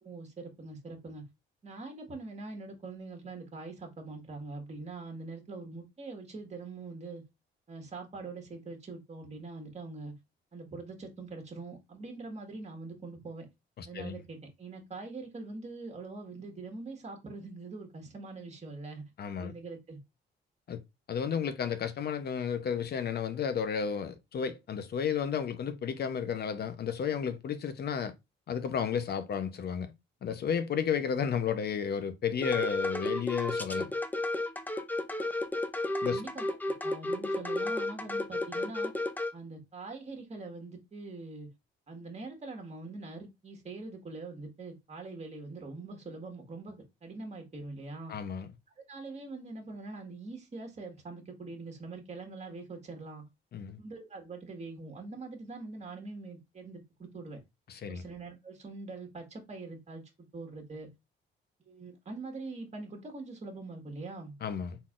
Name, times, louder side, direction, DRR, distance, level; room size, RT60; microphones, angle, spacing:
voice 1, 0.0-1.2 1.6-7.2 7.7-10.1 10.5-13.5 13.9-19.0 19.4-20.0 36.1-36.5 36.8-38.9 39.3-41.5 41.9-48.1 48.8-53.2 53.8-57.4 57.9-60.0 60.3-60.9 61.6-64.3, right 3 dB, 35° right, 1.8 m, -43 dB
voice 2, 13.8-14.2 19.2-19.5 20.7-20.8 21.1-28.1 28.5-29.9 30.2-33.9 36.0-36.2 48.1-48.5 53.5-53.8 57.7-58.0 64.4-64.8, left 7 dB, 55° left, 0.8 m, -32 dB
sound 1, 32.4-39.3, left 2 dB, 10° left, 0.6 m, -32 dB
4.1 x 3.8 x 2.5 m
cardioid pair, 90°, 20 cm